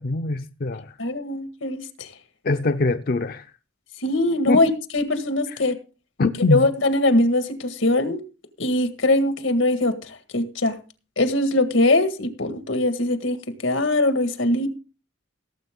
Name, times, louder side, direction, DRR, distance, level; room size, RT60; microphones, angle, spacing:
voice 1, 0.0-0.9 2.4-3.5 4.5-4.6 6.2-6.6, left 3 dB, 50° left, 0.6 m, -23 dB
voice 2, 1.0-2.1 4.0-5.8 6.5-8.2 8.6-10.7 11.2-14.7, left 2 dB, 90° left, 1.8 m, -22 dB
17.5 x 7.7 x 3.7 m
head